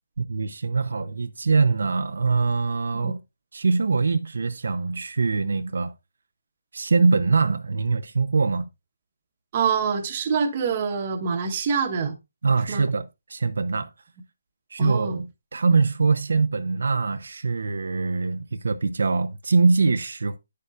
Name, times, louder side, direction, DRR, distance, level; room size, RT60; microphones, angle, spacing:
voice 1, 0.2-3.2 3.5-5.9 6.7-8.6 12.4-13.9 14.7-20.4, right 4 dB, 65° right, 0.7 m, -23 dB
voice 2, 9.5-12.2 12.7-12.9 14.8-15.2, right 6 dB, 25° right, 1.2 m, -25 dB
9.6 x 6.6 x 2.5 m
hypercardioid pair, 170°, 0 cm